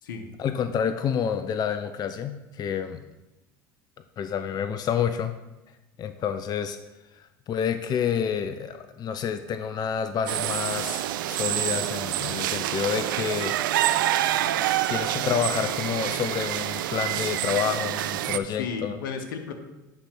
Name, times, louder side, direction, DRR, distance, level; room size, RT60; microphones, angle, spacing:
voice 1, 0.4-3.1 4.2-5.3 6.0-6.8 7.1-13.5 14.9-19.0, left 8 dB, 40° left, 9 dB, 0.5 m, -29 dB
sound 1, 10.3-18.4, right 13 dB, 80° right, 0.4 m, -27 dB
voice 2, 18.2-19.5, left 5 dB, 80° left, 6 dB, 0.9 m, -34 dB
9.9 x 3.4 x 5.8 m, 1.0 s
hypercardioid pair, 80°, 11 cm